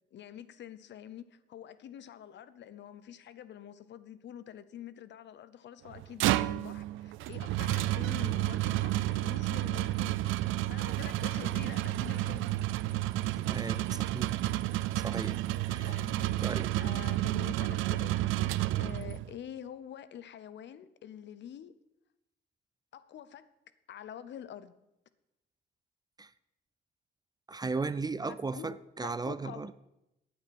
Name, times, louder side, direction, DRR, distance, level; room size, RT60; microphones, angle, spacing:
voice 1, 0.1-12.5 15.8-16.4 16.8-18.2 18.8-21.7 22.9-23.5 23.9-24.8 28.2-29.7, left 10 dB, 65° left, 0.8 m, -47 dB
sound 1, 5.9-19.3, right 16 dB, 90° right, 0.5 m, -31 dB
voice 2, 13.5-14.4 15.0-16.0 16.4-16.7 26.2-26.3 27.5-29.7, right 4 dB, 20° right, 0.4 m, -36 dB
15.0 x 9.4 x 4.3 m
cardioid pair, 90°, 20 cm